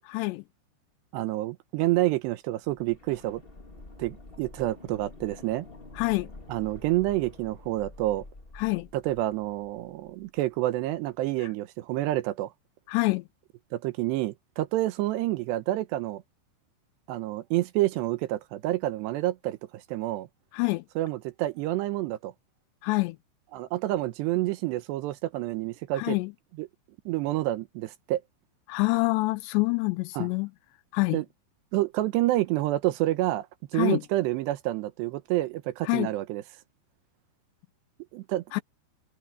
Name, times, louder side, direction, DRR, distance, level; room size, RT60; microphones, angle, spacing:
voice 1, 0.1-0.4 6.0-6.3 8.6-8.9 11.4-11.5 12.9-13.3 20.5-20.9 22.8-23.2 25.9-26.3 28.7-30.5 30.9-31.2 33.7-34.0 35.8-36.1 38.5-38.6, left 25 dB, 80° left, 2.6 m, -26 dB
voice 2, 1.1-3.4 4.0-5.7 6.5-8.2 8.9-12.5 13.7-16.2 17.1-20.3 21.0-22.3 23.5-26.2 26.6-26.7 27.1-28.2 30.2-30.3 31.1-31.2 31.7-33.5 33.7-36.4 38.1-38.6, right 16 dB, 80° right, 2.8 m, -28 dB
sound 1, 2.6-10.5 10.7-10.8, left 2 dB, 25° left, 1.1 m, -48 dB
omnidirectional pair, 5.2 m